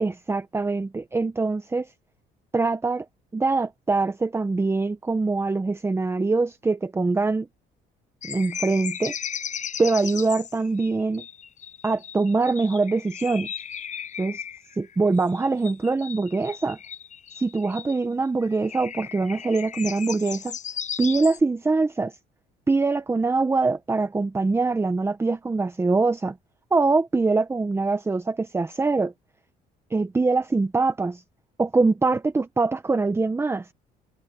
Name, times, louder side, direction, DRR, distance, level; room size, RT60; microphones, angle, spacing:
voice 1, 0.0-1.9 2.5-3.0 3.3-7.5 8.3-9.1 9.8-11.2 11.8-13.5 14.2-14.4 14.8-16.8 17.4-20.6 21.0-22.1 22.7-26.4 26.7-29.1 29.9-31.2 31.6-33.7, right 3 dB, 15° right, 0.9 m, -23 dB
sound 1, 8.2-18.0 18.4-21.4, left 8 dB, 45° left, 7.0 m, -36 dB
cardioid pair, 110°, 17 cm